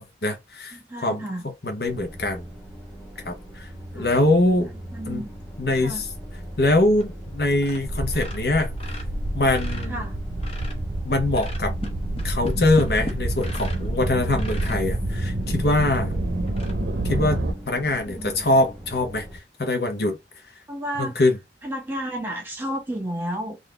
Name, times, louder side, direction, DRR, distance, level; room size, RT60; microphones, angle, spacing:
voice 1, 0.0-0.8 1.0-1.2 1.6-2.5 3.2-3.7 3.9-4.7 5.1-5.2 5.6-5.9 6.6-8.7 9.3-10.0 11.0-11.7 12.2-16.2 17.0-19.3 19.6-20.2 21.0-21.3, left 2 dB, 60° left, 0.9 m, -23 dB
voice 2, 0.7-1.5 3.9-4.1 4.4-5.3 5.8-6.0 9.9-10.2 18.0-18.6 20.7-21.3 21.6-23.6, equal, 10° right, 1.2 m, -32 dB
sound 1, 1.8-19.4, equal, 10° left, 1.2 m, -39 dB
sound 2, 6.9-7.3 7.5-7.8 8.1-10.9 11.3-13.9 14.3-14.8 15.4-15.5 15.9-16.0 16.5-16.7, left 1 dB, 35° left, 0.8 m, -38 dB
sound 3, 7.8-17.5, right 1 dB, 65° right, 0.7 m, -28 dB
3.9 x 2.5 x 3.2 m
head